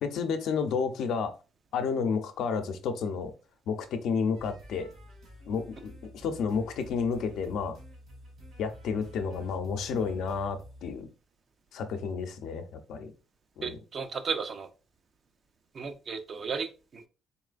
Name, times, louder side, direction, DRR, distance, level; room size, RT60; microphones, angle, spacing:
voice 1, 0.0-1.3 1.7-3.3 3.7-4.9 5.5-7.8 8.6-11.1 11.7-13.1 13.6-13.8, left 5 dB, 75° left, 7 dB, 0.6 m, -31 dB
sound 1, 4.3-10.9, equal, 60° right, 2.2 m, -50 dB
voice 2, 13.6-14.7 15.7-16.7 16.9-17.1, right 5 dB, 40° right, 8 dB, 0.6 m, -34 dB
4.2 x 3.1 x 2.5 m, 0.32 s
cardioid pair, 110°, 0 cm